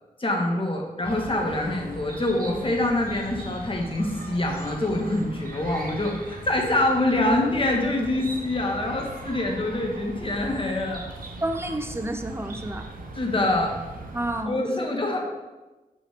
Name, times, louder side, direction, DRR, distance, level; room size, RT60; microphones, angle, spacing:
voice 1, 0.2-11.0 13.1-13.7 14.5-15.2, left 1 dB, 35° left, 0 dB, 1.3 m, -25 dB
Chirp tweet, 1.0-14.4, right 2 dB, 65° right, 0.8 m, -39 dB
voice 2, 11.4-12.9 14.1-14.9, right 1 dB, 15° right, 7 dB, 0.6 m, -30 dB
5.6 x 5.5 x 3.4 m, 1.1 s
cardioid pair, 55°, 16 cm